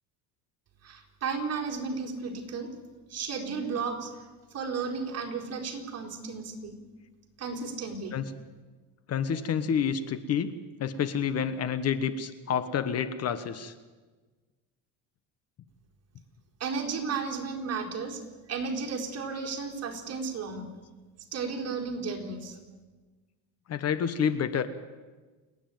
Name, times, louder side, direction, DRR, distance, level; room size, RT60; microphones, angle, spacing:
voice 1, 0.8-2.7 3.1-4.1 4.5-6.8 7.4-8.2 16.6-18.2 18.5-20.7 21.3-22.6, right 5 dB, 40° right, 1 dB, 4.0 m, -33 dB
voice 2, 9.1-10.5 10.8-13.7 23.7-24.7, left 7 dB, 40° left, 13 dB, 1.2 m, -29 dB
29.0 x 9.9 x 9.1 m, 1.3 s
cardioid pair, 120°, 37 cm